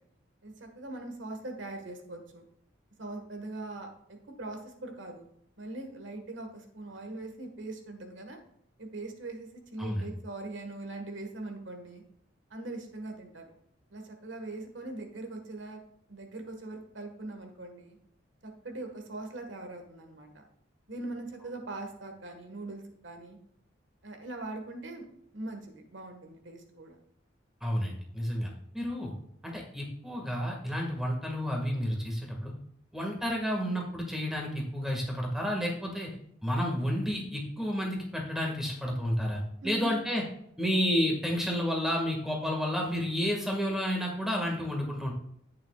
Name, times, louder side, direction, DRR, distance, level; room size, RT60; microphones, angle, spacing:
voice 1, 0.4-2.4 3.0-5.2 5.6-8.4 8.8-12.0 12.5-13.5 13.9-15.8 16.1-18.0 18.4-20.5 20.9-23.4 24.0-25.0 25.3-27.0 39.6-39.9, right 2 dB, 80° right, 4 dB, 1.6 m, -41 dB
voice 2, 27.6-29.1 29.4-32.5 32.9-36.1 36.4-40.2 40.6-45.1, equal, ahead, 0 dB, 1.8 m, -31 dB
10.5 x 8.8 x 2.4 m, 0.74 s
head